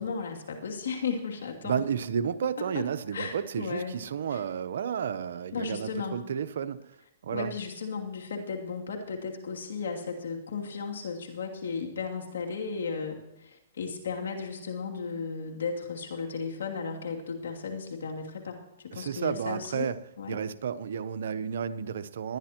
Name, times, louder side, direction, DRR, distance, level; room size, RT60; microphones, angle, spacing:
voice 1, 0.0-1.9 2.7-2.8 3.1-4.0 4.3-4.4 5.5-6.2 7.3-19.9 20.2-20.4, left 5 dB, 80° left, 1 dB, 2.6 m, -35 dB
voice 2, 1.6-6.9 7.2-7.5 18.9-20.0 20.3-22.4, right 7 dB, 75° right, 12 dB, 0.8 m, -32 dB
20.0 x 11.5 x 3.0 m, 0.98 s
hypercardioid pair, 140°, 0 cm